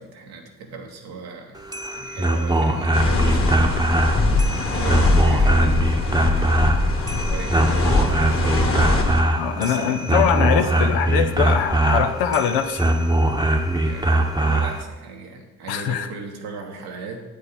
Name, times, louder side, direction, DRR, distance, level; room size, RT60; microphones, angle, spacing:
voice 1, 0.0-1.6 1.9-4.2 4.7-11.2 13.8-17.2, right 4 dB, 80° right, 1 dB, 1.3 m, -38 dB
sound 1, 1.6-14.8, right 1 dB, 10° right, 0.9 m, -21 dB
sound 2, 2.9-9.2, left 2 dB, 35° left, 1.4 m, -21 dB
voice 2, 9.4-12.9 15.7-16.1, left 8 dB, 85° left, 8 dB, 0.7 m, -22 dB
8.3 x 5.2 x 5.1 m, 1.2 s
hypercardioid pair, 45°, 37 cm